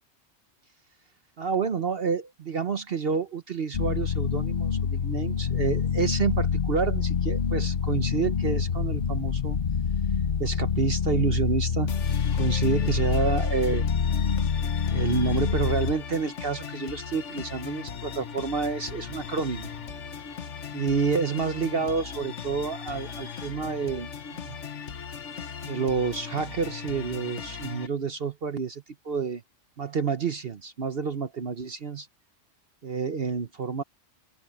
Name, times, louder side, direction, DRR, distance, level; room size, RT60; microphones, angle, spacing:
voice 1, 1.4-9.6 10.4-12.0 12.3-13.9 14.9-19.7 20.7-24.6 25.6-29.4 29.8-32.1 32.8-33.8, right 5 dB, 50° right, 1.1 m, -29 dB
sound 1, 2.3-2.4 2.6-3.0 3.7-3.8 4.5-4.6 5.2-5.3 5.6-5.7 5.9-6.0 7.1-7.4 7.8-7.9 8.8-8.9 9.4-9.9 10.2-10.4 10.9-11.6 12.7-12.9 13.2-13.3 13.6-13.7 13.9-14.0 14.6-14.7 15.1-15.2 15.8-20.9, equal, 15° left, 5.0 m, -55 dB
sound 2, 3.7-15.9, left 6 dB, 50° left, 1.1 m, -26 dB
sound 3, 11.9-27.9, left 7 dB, 70° left, 1.5 m, -38 dB
open air
omnidirectional pair, 1.3 m